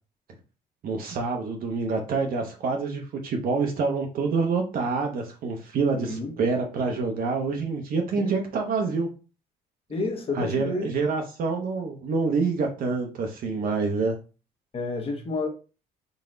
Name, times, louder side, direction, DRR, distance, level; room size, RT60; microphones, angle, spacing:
voice 1, 0.8-9.1 10.3-14.1, right 4 dB, 60° right, 0.8 m, -27 dB
voice 2, 5.9-6.3 8.1-8.3 9.9-10.9 14.7-15.5, left 3 dB, 35° left, 1.0 m, -30 dB
3.9 x 2.1 x 3.8 m
cardioid pair, 110°, 17 cm